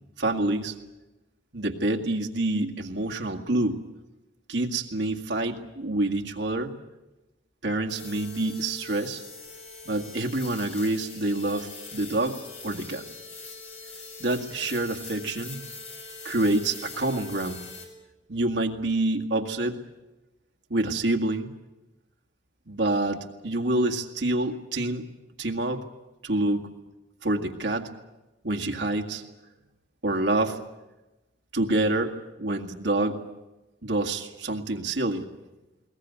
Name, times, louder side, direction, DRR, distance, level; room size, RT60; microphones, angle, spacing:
voice 1, 0.2-0.8 1.5-3.8 4.5-6.7 7.6-9.2 9.9-12.4 12.6-13.0 14.2-15.6 16.2-17.6 18.3-19.8 20.7-21.5 22.7-25.1 25.4-25.8 26.2-26.6 27.2-27.9 28.4-29.2 30.0-30.6 31.5-33.2 33.8-35.3, right 2 dB, 75° right, 3 dB, 1.9 m, -27 dB
sound 1, 7.9-17.8, left 3 dB, 35° left, 5.3 m, -42 dB
21.0 x 18.5 x 9.4 m, 1.1 s
head